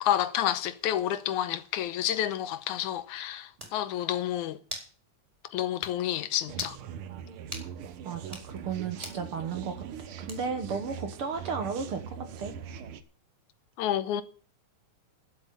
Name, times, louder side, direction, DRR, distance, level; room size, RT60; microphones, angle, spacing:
voice 1, 0.0-4.6 5.5-6.8 13.8-14.2, left 11 dB, 75° left, 2.2 m, -29 dB
sound 1, 3.1-3.2 3.6-3.8 4.7-4.9 5.3-5.4 5.8-5.9 6.5-6.8 7.5-7.7 8.2-8.5 9.0-9.2 10.3-10.6, right 1 dB, 10° right, 3.9 m, -41 dB
sound 2, 6.5-13.0, right 8 dB, 85° right, 1.2 m, -41 dB
voice 2, 8.0-12.5, right 5 dB, 55° right, 1.7 m, -34 dB
12.0 x 8.0 x 8.5 m
omnidirectional pair, 3.6 m